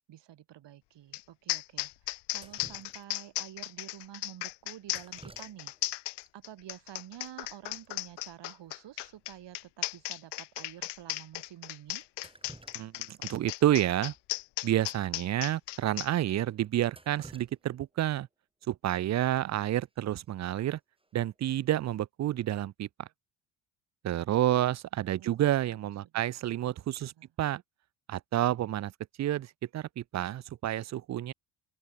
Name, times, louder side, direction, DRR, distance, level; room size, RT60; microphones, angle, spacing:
voice 1, 0.1-1.9 2.3-6.0 6.3-12.0 25.0-25.8 27.0-27.3, right 12 dB, 60° right, 6.5 m, -49 dB
sound 1, 1.1-1.2 1.5-16.1, left 21 dB, 60° left, 0.6 m, -36 dB
Drip, 2.4-3.4 4.9-5.9 6.2-6.3 7.3-7.4 7.6-7.9 8.2-8.3 8.7-8.8 9.3-9.4 9.9-10.0 10.7-10.8 12.0-13.2 13.6-13.7 15.0-15.1 15.5-15.6 16.1-16.2 16.6-18.3 20.3-20.6 21.0-21.4, right 2 dB, 10° right, 3.5 m, -53 dB
voice 2, 12.7-14.1 14.6-18.3 18.7-20.8 21.1-23.1 24.0-27.1 27.4-27.6 28.1-28.9 29.2-31.3, right 13 dB, 35° right, 0.5 m, -29 dB
open air
supercardioid pair, 70°, 47 cm